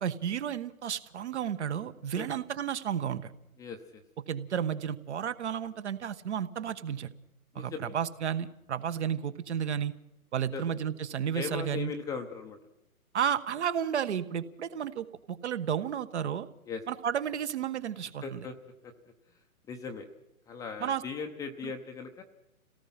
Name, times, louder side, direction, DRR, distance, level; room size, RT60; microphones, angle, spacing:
voice 1, 0.0-3.3 4.3-7.1 7.5-9.9 10.3-11.9 13.1-16.5 16.9-18.5 20.8-21.0 21.6-21.7, right 8 dB, 50° right, 13 dB, 1.3 m, -32 dB
voice 2, 3.6-4.0 7.5-7.9 10.5-10.6 11.3-12.6 16.7-16.8 18.2-18.5 18.8-18.9 19.3-19.4 19.7-20.1 20.5-22.2, left 5 dB, 10° left, 4 dB, 0.7 m, -38 dB
27.5 x 18.0 x 5.7 m, 0.86 s
figure-of-eight pair, 125°, 44 cm